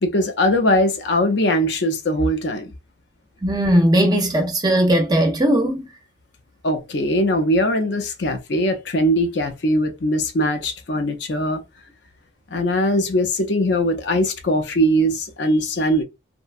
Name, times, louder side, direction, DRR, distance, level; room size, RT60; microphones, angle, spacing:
voice 1, 0.0-2.7 6.6-11.6 12.5-16.0, equal, 65° left, 0.5 m, -20 dB
voice 2, 3.4-5.9, right 1 dB, 20° right, 0.4 m, -18 dB
2.7 x 2.1 x 2.4 m
head